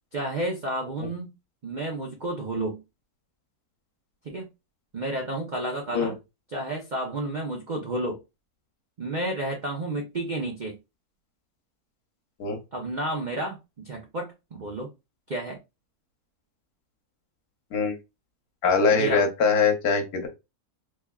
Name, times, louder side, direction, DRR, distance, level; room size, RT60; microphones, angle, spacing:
voice 1, 0.1-1.3 1.6-2.8 4.2-4.5 4.9-6.2 6.5-8.2 9.0-10.8 12.7-14.9 15.3-15.6 18.9-19.2, right 1 dB, 60° right, 0.5 m, -31 dB
voice 2, 18.6-20.3, left 5 dB, 70° left, 1.4 m, -22 dB
3.4 x 3.3 x 2.2 m
omnidirectional pair, 1.7 m